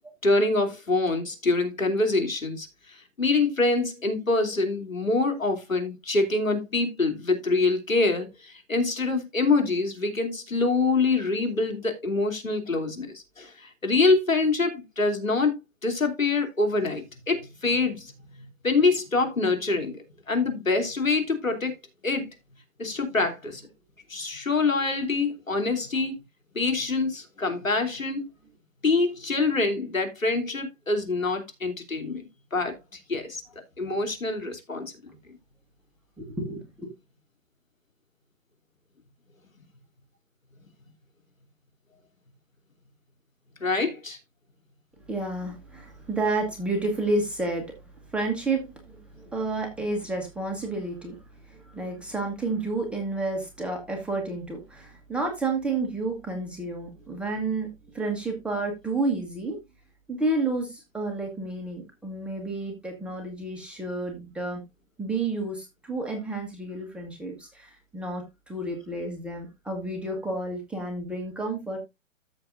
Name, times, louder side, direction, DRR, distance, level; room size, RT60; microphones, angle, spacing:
voice 1, 0.2-21.7 22.0-22.3 22.8-23.6 24.1-26.2 26.5-28.3 28.8-33.4 33.8-34.8 43.6-44.2, left 3 dB, 85° left, 3.0 m, -25 dB
voice 2, 36.2-36.9 45.1-47.8 48.1-51.2 51.5-59.6 60.1-64.6 65.0-71.8, right 2 dB, 5° right, 1.2 m, -30 dB
13.5 x 6.7 x 2.5 m
figure-of-eight pair, 130°, 39 cm